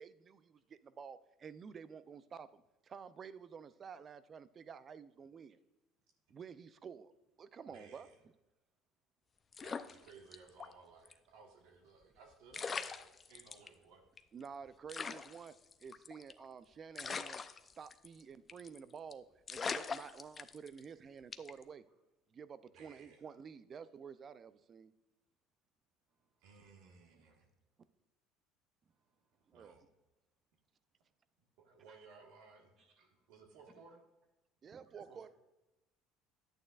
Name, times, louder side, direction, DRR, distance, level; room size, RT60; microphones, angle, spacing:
voice 1, 0.0-5.6 6.3-7.1 7.4-8.1 14.3-15.5 15.8-17.4 17.8-21.8 22.3-24.9 29.5-29.8 34.6-35.3, right 6 dB, 40° right, 15 dB, 0.5 m, -51 dB
voice 2, 7.7-8.2 9.6-14.0 22.7-23.2 26.4-27.5 29.5-29.8 31.6-32.8 33.3-34.0 35.1-35.3, right 4 dB, 80° right, 1 dB, 1.6 m, -59 dB
sound 1, 9.5-10.7 11.0-11.1 12.2-12.3 12.5-13.7 14.2-14.3 14.4-14.5 14.9-16.4 16.9-18.2 18.5-18.8 19.1-19.2 19.5-20.8 21.3-21.6, left 5 dB, 30° left, 0.5 m, -42 dB
voice 3, 26.1-26.5 28.9-29.6 32.8-33.3 34.8-35.0, right 4 dB, 55° right, 1 dB, 2.9 m, -74 dB
11.0 x 8.9 x 2.4 m, 1.0 s
supercardioid pair, 95°, 0 cm